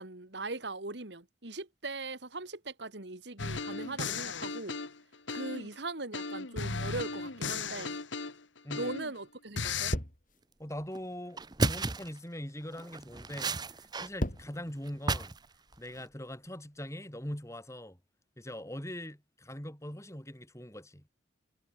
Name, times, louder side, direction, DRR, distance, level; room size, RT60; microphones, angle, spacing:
voice 1, 0.0-4.8 5.3-8.0 8.7-9.9, right 2 dB, 65° right, 2.3 m, -40 dB
sound 1, 3.4-5.7 6.1-9.2 9.6-9.9, left 4 dB, 85° left, 2.0 m, -36 dB
sound 2, 9.9-10.3 11.6-12.0 12.8-13.1 13.9-14.6 15.3-16.1, equal, 45° left, 4.7 m, -35 dB
voice 2, 10.6-15.3 15.8-18.0 18.4-21.0, equal, 15° left, 4.5 m, -42 dB
sound 3, 10.8-11.0 11.4-12.2 12.7-14.1 14.4-15.5 15.7-16.1, right 3 dB, 20° right, 0.8 m, -33 dB
head